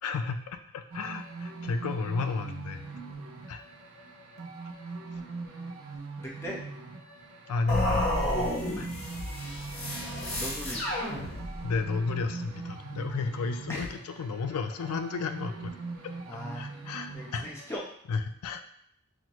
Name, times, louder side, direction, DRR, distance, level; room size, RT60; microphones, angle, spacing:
voice 1, 0.0-2.8 3.5-3.6 7.5-8.1 8.8-8.9 11.6-15.8 16.0-17.5 18.1-18.6, left 4 dB, 85° left, 8 dB, 0.4 m, -32 dB
sound 1, 0.9-17.8, right 3 dB, 75° right, 0.7 m, -42 dB
voice 2, 6.2-6.6 10.4-10.8 13.7-13.9 16.3-16.7 17.1-17.8, equal, 10° left, -3 dB, 0.6 m, -38 dB
sound 2, 7.7-11.8, left 1 dB, 50° left, 1.3 m, -31 dB
6.0 x 2.1 x 2.9 m, 0.66 s
head